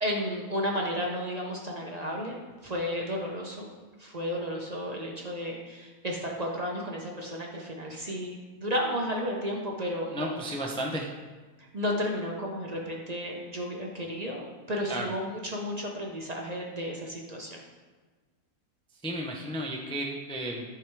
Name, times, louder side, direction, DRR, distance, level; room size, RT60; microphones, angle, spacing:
voice 1, 0.0-3.7 4.0-10.4 11.7-17.6, equal, 35° right, -1 dB, 0.8 m, -33 dB
voice 2, 10.1-11.1 14.9-15.1 19.0-20.6, right 1 dB, 10° left, -1 dB, 0.3 m, -33 dB
10.5 x 3.7 x 4.6 m, 1.4 s
omnidirectional pair, 1.6 m